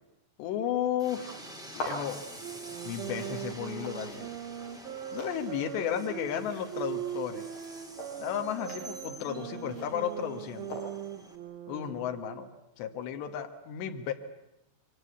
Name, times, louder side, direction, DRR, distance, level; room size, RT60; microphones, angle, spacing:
voice 1, 0.4-1.5 1.8-2.2 2.9-4.3 5.1-7.5 8.2-10.8 11.7-12.5 12.8-14.1, left 9 dB, 85° left, 6 dB, 3.6 m, -33 dB
Train, 1.0-11.3, right 1 dB, ahead, 2.3 m, -48 dB
sound 1, 1.7-11.3, left 1 dB, 70° left, 9.7 m, -45 dB
sound 2, 2.4-12.4, right 10 dB, 70° right, 3.1 m, -40 dB
27.5 x 24.0 x 8.2 m, 0.87 s
omnidirectional pair, 4.8 m